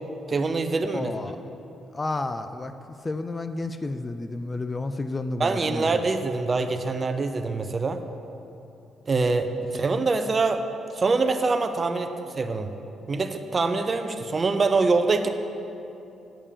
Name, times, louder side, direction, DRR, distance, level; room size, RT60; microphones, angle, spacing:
voice 1, 0.3-1.1 5.4-8.0 9.1-10.6 10.9-12.7 13.1-15.3, right 3 dB, 35° right, 8 dB, 0.6 m, -24 dB
voice 2, 0.9-1.4 1.9-2.7 3.0-6.0 9.7-9.8, left 2 dB, 25° left, 10 dB, 0.4 m, -31 dB
8.8 x 5.3 x 6.8 m, 2.8 s
cardioid pair, 90°, 0 cm